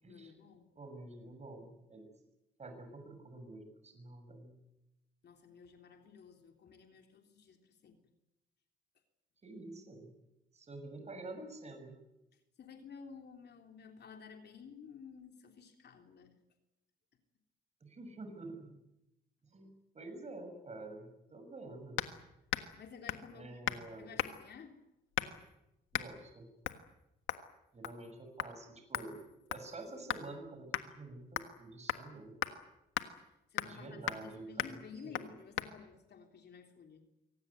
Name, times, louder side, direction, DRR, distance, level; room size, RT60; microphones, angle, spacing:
voice 1, 0.1-0.7 5.2-8.0 12.3-16.3 22.8-23.7 24.0-24.8 33.2-33.3 33.5-37.0, left 6 dB, 60° left, 4 dB, 3.4 m, -53 dB
voice 2, 0.7-2.1 2.6-4.6 9.4-10.1 10.5-12.0 17.8-18.8 19.4-22.0 23.3-24.2 25.9-26.5 27.7-29.2 29.5-32.4 33.6-35.3, right 2 dB, 35° right, 6 dB, 6.4 m, -48 dB
sound 1, 22.0-22.2 22.5-22.8 23.1-23.3 23.7-23.9 24.2-24.5 25.2-25.5 25.9-26.1 26.6-26.8 27.3-27.5 27.8-28.1 28.4-28.5 28.9-30.3 30.7-30.9 31.4-31.6 31.9-32.0 32.4-32.5 33.0-33.1 33.6-33.8 34.1-34.3 34.6-34.8 35.1-35.3 35.6-35.7, left 12 dB, 85° left, 1.5 m, -37 dB
24.0 x 17.5 x 9.6 m, 0.91 s
cardioid pair, 90°, 20 cm